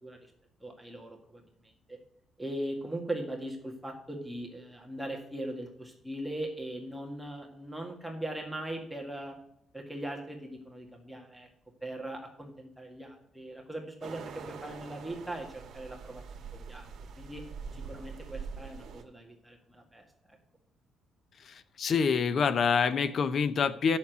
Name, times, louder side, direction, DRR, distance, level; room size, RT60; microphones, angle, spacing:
voice 1, 0.0-0.3 0.6-2.0 2.4-9.3 9.7-11.5 11.8-16.2 16.5-16.9 17.2-17.4 17.7-20.4, right 1 dB, ahead, 0 dB, 1.9 m, -40 dB
sound 1, 14.0-19.0, right 5 dB, 70° right, 1.4 m, -44 dB
voice 2, 21.5-24.0, left 6 dB, 55° left, 14 dB, 0.7 m, -26 dB
7.2 x 6.6 x 7.9 m, 0.74 s
cardioid pair, 90°, 0 cm